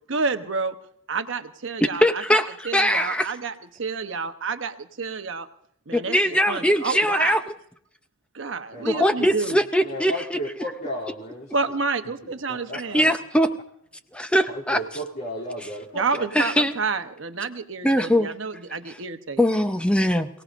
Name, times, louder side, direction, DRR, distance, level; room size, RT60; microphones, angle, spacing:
voice 1, 0.1-0.8 1.1-2.4 2.7-3.5 3.8-5.5 5.9-7.4 8.3-9.6 11.5-13.1 15.9-19.4, right 4 dB, 65° right, 9 dB, 0.9 m, -29 dB
voice 2, 2.0-2.4 2.7-3.2 5.9-7.4 8.8-10.4 12.7-13.5 14.1-14.8 16.3-16.7 17.8-18.3 18.9-19.0 19.4-20.3, equal, 5° left, 8 dB, 0.6 m, -21 dB
voice 3, 8.7-9.4 9.8-11.8 12.2-13.0 14.5-16.3, equal, 50° left, -7 dB, 2.9 m, -34 dB
28.0 x 17.5 x 2.5 m, 0.68 s
head